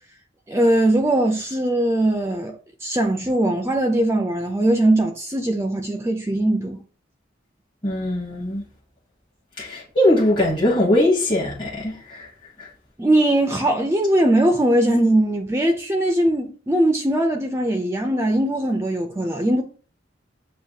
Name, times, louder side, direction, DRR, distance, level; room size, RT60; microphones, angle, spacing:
voice 1, 0.5-6.8 13.0-19.6, right 1 dB, 15° right, 0.4 m, -20 dB
voice 2, 7.8-8.6 9.6-12.3 12.6-12.7, left 1 dB, 25° left, 1.0 m, -21 dB
7.3 x 2.5 x 2.8 m
head